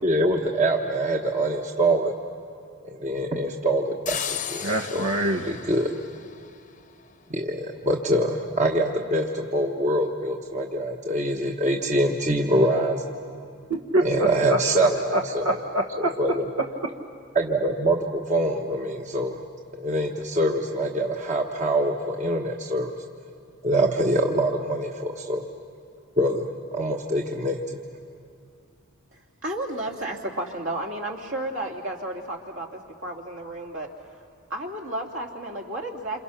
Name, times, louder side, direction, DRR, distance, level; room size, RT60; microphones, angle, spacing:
voice 1, 0.0-2.1 2.8-5.1 5.5-5.9 7.3-13.1 14.0-15.5 16.0-16.5 17.3-19.4 19.8-23.0 23.6-25.4 26.2-27.8, right 1 dB, 35° right, 1 dB, 1.3 m, -24 dB
sound 1, 4.1-6.9, left 8 dB, 35° left, 0.9 m, -35 dB
voice 2, 4.6-5.6 13.7-16.2 16.8-16.9, right 1 dB, 75° right, 2 dB, 1.4 m, -25 dB
voice 3, 29.1-33.9 34.5-36.2, right 1 dB, 60° right, 1 dB, 2.8 m, -32 dB
28.5 x 27.5 x 5.9 m, 2.4 s
head